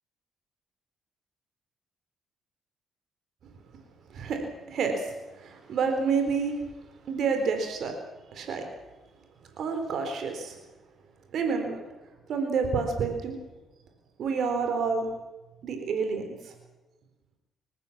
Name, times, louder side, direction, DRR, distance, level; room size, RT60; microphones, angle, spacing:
voice 1, 4.1-6.6 7.1-7.9 8.3-8.6 9.6-10.6 11.3-11.8 12.3-13.4 14.2-15.1 15.6-16.5, right 5 dB, 65° right, 5 dB, 4.0 m, -29 dB
26.5 x 14.5 x 7.3 m, 1.1 s
cardioid pair, 90°, 0 cm